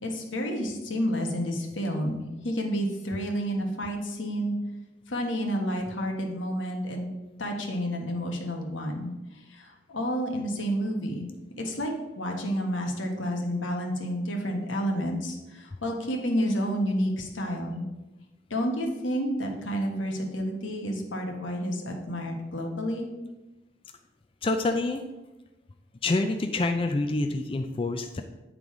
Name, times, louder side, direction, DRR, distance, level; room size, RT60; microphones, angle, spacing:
voice 1, 0.0-4.5 5.1-7.1 7.4-11.2 11.6-17.8 18.5-23.1, equal, 90° left, 2 dB, 1.3 m, -30 dB
voice 2, 24.4-25.0 26.0-28.2, left 2 dB, 30° left, 6 dB, 0.4 m, -27 dB
9.0 x 3.9 x 4.7 m, 1.0 s
head